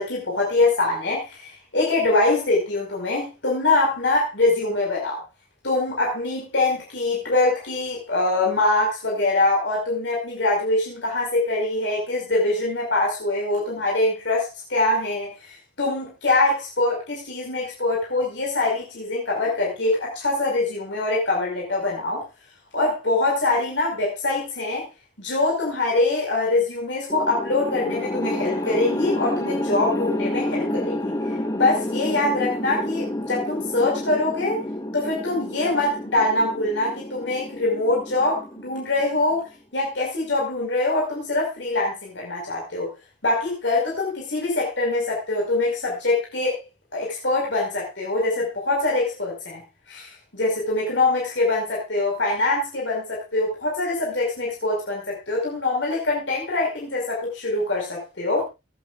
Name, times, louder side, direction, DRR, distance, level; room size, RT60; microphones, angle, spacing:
voice 1, 0.0-5.2 5.6-22.2 22.7-24.9 25.2-31.2 31.5-34.6 34.9-42.9 43.2-46.6 46.9-58.5, left 2 dB, 75° left, -2 dB, 5.4 m, -24 dB
sound 1, 27.1-39.4, left 1 dB, 20° left, 1.2 m, -29 dB
23.0 x 9.0 x 2.5 m, 0.25 s
head